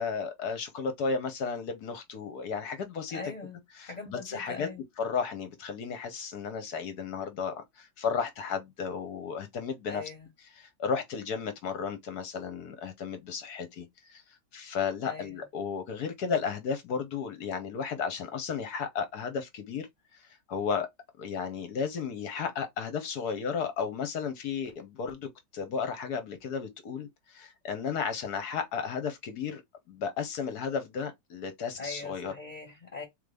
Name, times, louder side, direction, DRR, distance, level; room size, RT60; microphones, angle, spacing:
voice 1, 0.0-3.2 3.8-4.7 5.0-10.0 10.6-19.9 20.1-20.9 21.2-29.6 29.9-32.3, left 6 dB, 60° left, 1.2 m, -34 dB
voice 2, 3.1-3.6 3.8-4.8 9.9-10.3 15.0-15.4 31.8-33.0, left 3 dB, 25° left, 1.1 m, -41 dB
3.8 x 3.4 x 3.3 m
omnidirectional pair, 2.1 m